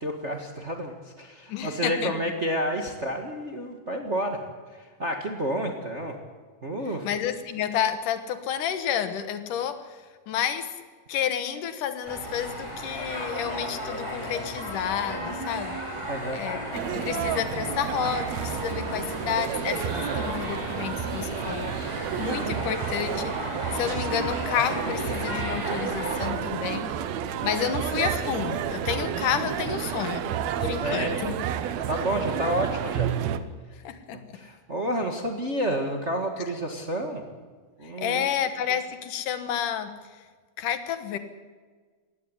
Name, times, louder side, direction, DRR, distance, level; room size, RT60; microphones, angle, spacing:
voice 1, 0.0-4.4 4.7-6.2 6.6-7.1 16.1-16.4 30.0-30.4 30.8-31.2 31.9-33.1 34.3-37.2 37.8-38.2, equal, 30° right, 4 dB, 1.4 m, -30 dB
voice 2, 1.5-2.1 7.0-9.8 10.3-10.7 11.1-15.8 16.3-21.7 22.2-23.4 23.7-26.9 27.4-31.4 33.8-34.2 38.0-39.9 40.6-41.2, left 9 dB, 75° left, 10 dB, 2.8 m, -30 dB
sound 1, 12.0-26.3, equal, 10° right, 4.7 m, -34 dB
sound 2, 16.7-33.4, right 9 dB, 70° right, 1.9 m, -31 dB
18.5 x 15.5 x 9.9 m, 1.5 s
omnidirectional pair, 3.7 m